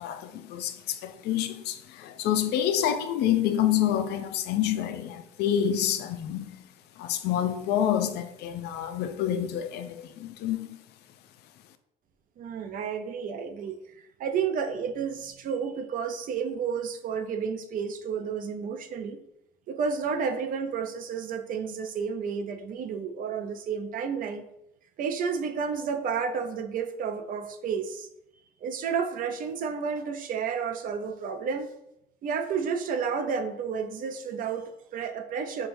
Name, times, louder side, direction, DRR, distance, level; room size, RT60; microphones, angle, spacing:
voice 1, 0.0-6.7 7.0-10.8, left 10 dB, 75° left, 0.4 m, -28 dB
voice 2, 12.4-19.2 19.7-24.4 25.0-28.1 28.6-31.7 32.2-35.7, right 6 dB, 55° right, 0.5 m, -31 dB
5.6 x 2.3 x 2.5 m
cardioid pair, 110°, 17 cm